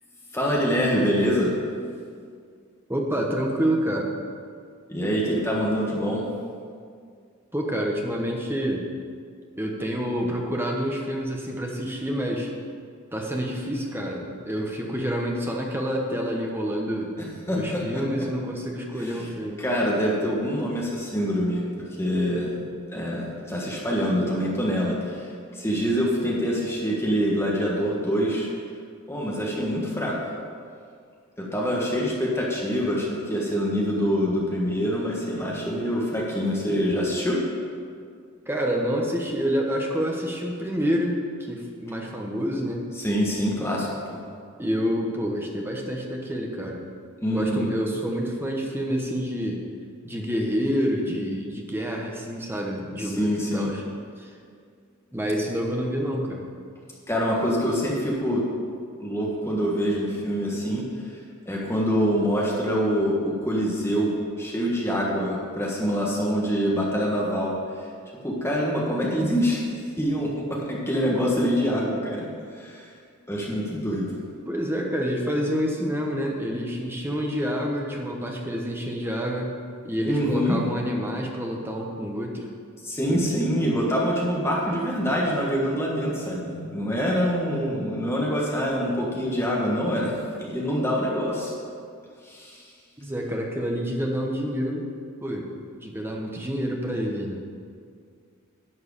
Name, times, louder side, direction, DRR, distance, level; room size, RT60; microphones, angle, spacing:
voice 1, 0.3-1.5 4.9-6.2 17.5-18.0 19.0-19.3 19.6-22.6 22.9-28.5 29.1-30.3 31.4-37.4 42.9-44.2 47.2-47.7 53.0-53.7 57.1-58.4 59.0-61.1 61.4-67.5 68.2-69.6 70.0-72.3 72.5-72.9 73.3-74.2 80.0-80.6 82.8-91.5 92.2-92.6, equal, 10° left, -4 dB, 1.4 m, -25 dB
voice 2, 2.9-4.1 7.5-8.9 9.6-12.5 13.1-17.1 17.5-19.6 38.5-42.9 44.6-46.8 47.3-49.6 50.0-53.8 54.2-54.3 55.1-56.5 74.5-79.5 79.8-82.5 83.1-83.2 93.0-94.9 95.2-95.5 95.8-97.4, equal, 10° right, 0 dB, 1.0 m, -28 dB
11.0 x 4.8 x 8.2 m, 2.2 s
head